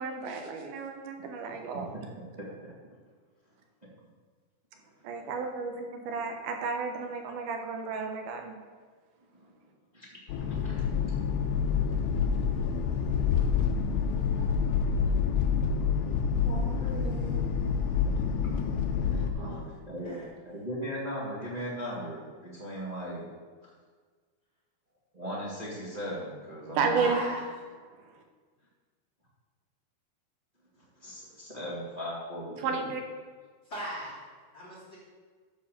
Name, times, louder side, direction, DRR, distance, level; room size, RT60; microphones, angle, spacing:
voice 1, 0.0-1.9 5.0-8.5 26.8-27.2 32.6-33.0, right 5 dB, 70° right, 4 dB, 2.8 m, -32 dB
voice 2, 1.7-2.1 2.4-2.7 5.2-5.5 9.3-9.5 9.9-11.2 15.5-16.8 17.9-18.2 19.0-20.2 20.4-23.2 25.1-27.1 30.8-32.9, equal, 20° right, -6 dB, 1.0 m, -39 dB
sound 1, 10.3-19.3, left 6 dB, 85° left, 2.9 m, -27 dB
voice 3, 16.4-17.4 19.4-20.3 26.9-27.4 33.7-34.1 34.5-35.0, equal, 30° left, -10 dB, 3.5 m, -39 dB
12.0 x 4.8 x 6.7 m, 1.5 s
omnidirectional pair, 4.7 m